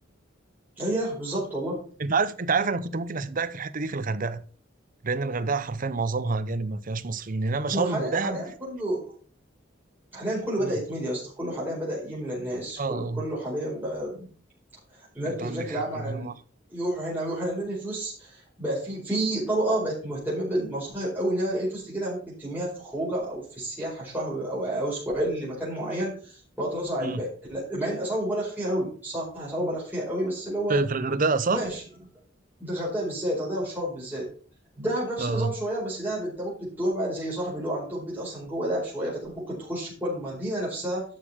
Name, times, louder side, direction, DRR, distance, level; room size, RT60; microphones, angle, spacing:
voice 1, 0.8-1.8 7.7-9.1 10.1-14.3 15.1-16.3 16.7-30.8 31.5-31.8 32.6-34.3 34.8-41.0, right 1 dB, 10° right, 4.9 m, -30 dB
voice 2, 2.0-4.4 5.0-8.4 10.6-10.7 12.8-13.2 15.3-16.3 27.0-27.2 30.7-31.6 35.2-35.5, right 4 dB, 45° right, 0.7 m, -28 dB
12.0 x 6.6 x 4.4 m
head